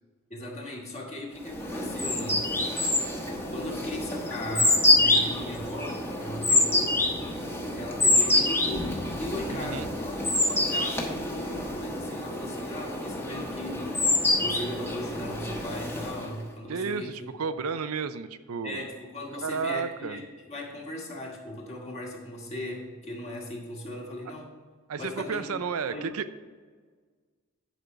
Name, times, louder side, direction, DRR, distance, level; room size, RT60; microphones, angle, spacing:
voice 1, 0.3-2.5 3.5-7.0 7.7-17.2 17.5-17.6 18.6-24.5 25.0-25.4 25.9-26.1, left 1 dB, 30° left, -2 dB, 1.9 m, -38 dB
sound 1, 1.4-16.4, left 2 dB, 10° left, 1.1 m, -26 dB
voice 2, 9.5-9.9 16.7-18.8 19.3-20.2 24.9-26.4, right 5 dB, 85° right, 12 dB, 0.5 m, -32 dB
10.5 x 5.3 x 4.6 m, 1.5 s
head